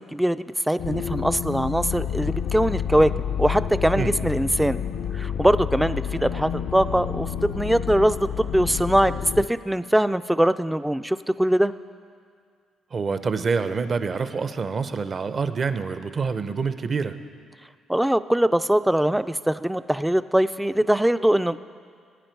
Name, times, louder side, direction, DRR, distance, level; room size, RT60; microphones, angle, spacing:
voice 1, 0.0-3.1 3.4-4.8 5.1-7.3 7.5-11.7 17.9-21.6, right 1 dB, 5° right, 13 dB, 0.4 m, -22 dB
sound 1, 0.8-9.5, left 8 dB, 80° left, 0.6 m, -29 dB
voice 2, 12.9-17.2, right 5 dB, 45° right, 11 dB, 0.7 m, -26 dB
19.5 x 9.7 x 4.6 m, 2.2 s
cardioid pair, 90°, 0 cm